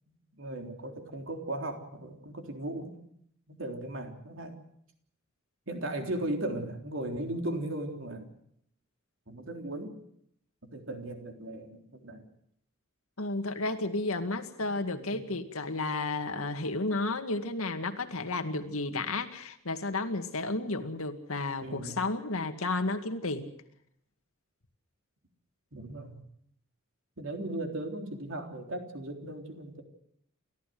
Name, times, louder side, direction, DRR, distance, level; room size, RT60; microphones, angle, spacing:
voice 1, 0.4-3.0 3.5-4.6 5.7-8.3 9.3-10.0 10.6-12.2 14.6-15.4 21.6-22.0 25.7-26.2 27.2-29.8, right 1 dB, 65° right, 4 dB, 3.6 m, -37 dB
voice 2, 13.2-23.5, left 2 dB, 90° left, 7 dB, 2.2 m, -32 dB
29.0 x 14.0 x 7.8 m, 0.72 s
head